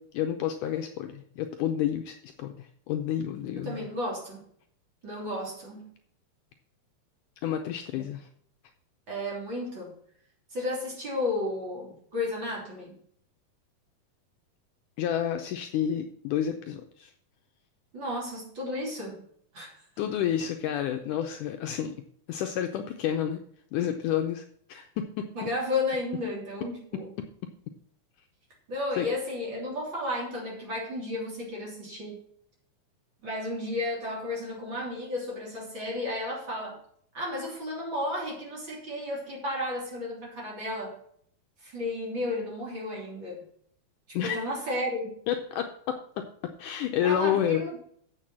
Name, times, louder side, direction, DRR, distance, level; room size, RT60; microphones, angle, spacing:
voice 1, 0.0-3.9 7.4-8.3 15.0-17.1 20.0-22.0 22.3-23.4 23.7-24.4 24.7-25.3 29.0-29.1 44.1-44.4 45.3-47.6, left 10 dB, 75° left, 5 dB, 2.0 m, -30 dB
voice 2, 3.6-4.5 5.0-5.9 7.9-8.1 9.1-9.9 10.5-13.0 17.9-19.2 19.5-19.8 25.4-27.1 28.7-32.2 33.2-36.8 37.1-41.0 41.6-43.4 44.1-45.1 47.0-47.8, left 2 dB, 35° right, -3 dB, 3.7 m, -33 dB
8.0 x 6.7 x 7.3 m, 0.64 s
omnidirectional pair, 4.1 m